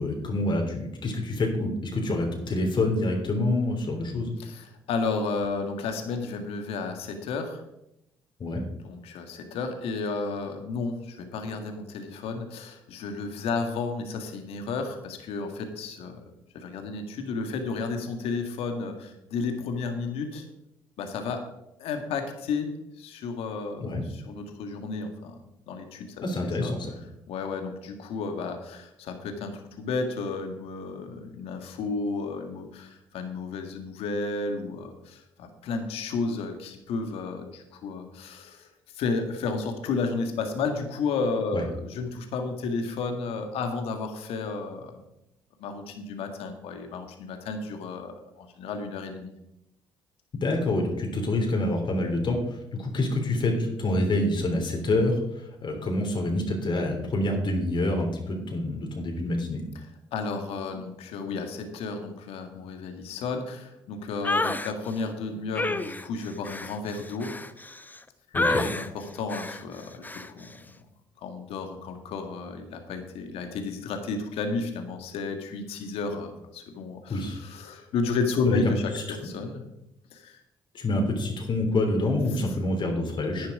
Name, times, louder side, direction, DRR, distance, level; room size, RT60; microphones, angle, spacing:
voice 1, 0.0-4.3 8.4-8.6 23.8-24.0 26.2-26.9 41.5-41.6 50.4-52.4 52.7-59.6 68.3-68.6 77.1-77.4 78.4-78.6 78.9-79.0 80.7-83.5, left 2 dB, 50° left, 2 dB, 3.2 m, -27 dB
voice 2, 4.4-7.6 8.8-20.5 21.0-21.4 21.8-26.3 26.6-26.7 27.3-38.7 38.9-45.0 45.6-49.3 59.8-67.3 68.6-70.7 71.2-79.7 80.1-80.4 83.3-83.5, left 4 dB, 75° left, 5 dB, 1.8 m, -32 dB
sound 1, 64.2-64.7 65.5-68.0 68.3-68.9 69.3-69.6 70.0-70.3, left 2 dB, 15° left, 0.9 m, -29 dB
10.5 x 9.7 x 4.9 m, 0.83 s
hypercardioid pair, 55°, 10 cm